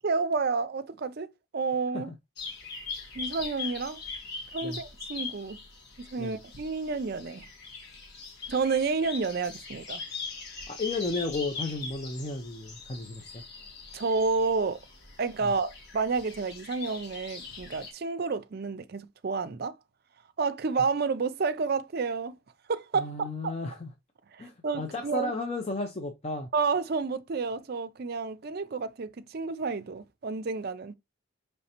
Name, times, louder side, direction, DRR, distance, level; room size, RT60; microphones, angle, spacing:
voice 1, 0.0-2.1 3.2-4.0 4.5-5.6 6.0-7.4 8.5-10.0 13.9-14.8 15.2-19.7 20.4-22.4 22.7-23.5 24.3-25.3 26.5-30.9, right 4 dB, 45° right, 0.4 m, -30 dB
sound 1, 2.4-17.9, left 4 dB, 50° left, 1.4 m, -41 dB
voice 2, 10.7-13.4 15.4-15.5 22.9-23.9 24.4-26.5, left 2 dB, 30° left, 0.5 m, -33 dB
5.3 x 3.2 x 2.8 m
head